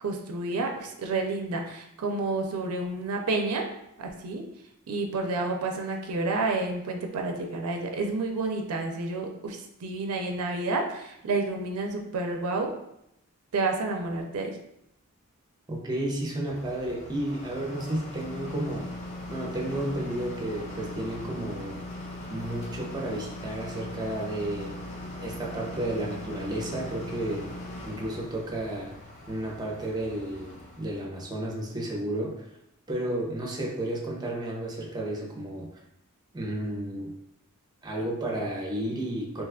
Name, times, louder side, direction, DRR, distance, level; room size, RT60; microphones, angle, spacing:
voice 1, 0.0-3.7 4.0-4.4 4.9-12.7 13.5-14.5, right 3 dB, 80° right, 2 dB, 0.4 m, -30 dB
voice 2, 15.7-18.9 19.3-21.8 22.3-24.7 25.2-27.5 27.8-28.9 29.3-32.5 32.9-35.7 36.3-37.1 37.8-39.4, right 1 dB, 20° right, -2 dB, 0.6 m, -32 dB
sound 1, 16.5-31.1, left 1 dB, 30° left, 0.5 m, -40 dB
2.8 x 2.3 x 3.4 m, 0.81 s
head